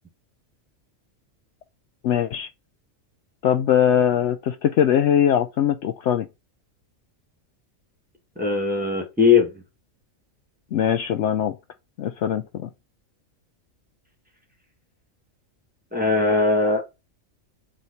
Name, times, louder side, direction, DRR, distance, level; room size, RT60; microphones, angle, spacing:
voice 1, 2.0-2.5 3.4-6.3 10.7-11.6 12.0-12.7, left 9 dB, 65° left, 0.8 m, -21 dB
voice 2, 8.4-9.5 15.9-16.9, left 4 dB, 5° right, 1.8 m, -20 dB
7.5 x 3.3 x 4.2 m
omnidirectional pair, 1.4 m